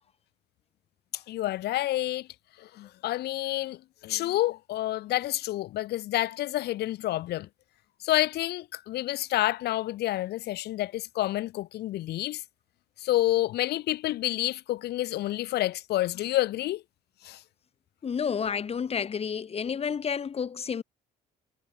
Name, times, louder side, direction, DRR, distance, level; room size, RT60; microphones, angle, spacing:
voice 1, 1.1-2.3 2.6-7.5 8.0-12.4 13.0-16.8 17.2-17.4, left 15 dB, 75° left, 2.4 m, -29 dB
voice 2, 18.0-20.8, left 7 dB, 35° left, 3.1 m, -30 dB
cardioid pair, 110°, 17 cm